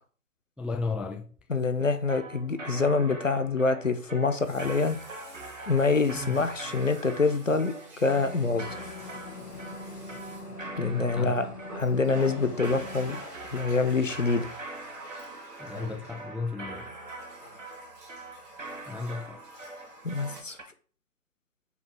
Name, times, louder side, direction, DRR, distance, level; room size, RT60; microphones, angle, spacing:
voice 1, 0.6-1.3 6.1-6.3 10.8-11.5 15.6-16.9 18.9-19.4, left 4 dB, 5° right, 0.3 m, -34 dB
voice 2, 1.5-5.0 5.7-8.8 10.8-11.5 11.7-13.2 13.5-14.5 20.0-20.6, left 4 dB, 55° left, 0.5 m, -26 dB
sound 1, 2.1-20.6, right 2 dB, 55° right, 0.8 m, -43 dB
Water tap faucet, 4.3-11.1 11.6-20.4, right 1 dB, 85° right, 1.6 m, -48 dB
sound 2, 8.1-13.2, left 2 dB, 80° left, 1.5 m, -42 dB
5.1 x 2.0 x 4.6 m
figure-of-eight pair, 170°, 46 cm